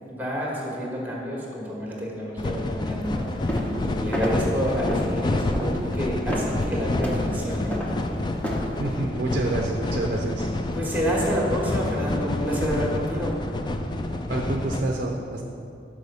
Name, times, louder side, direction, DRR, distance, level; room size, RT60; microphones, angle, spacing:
voice 1, 0.0-7.8 10.8-13.4, equal, 10° right, -3 dB, 1.3 m, -29 dB
sound 1, 2.4-14.8, left 1 dB, 25° left, 0.3 m, -28 dB
sound 2, 3.5-3.8 4.1-4.4 4.9-5.1 5.5-5.7 6.3-6.6 7.0-7.2 7.7-7.9 8.4-8.7, equal, 10° left, 0.8 m, -29 dB
voice 2, 8.8-10.5 14.3-15.4, right 2 dB, 50° right, 0 dB, 0.5 m, -27 dB
6.4 x 4.9 x 5.4 m, 2.6 s
head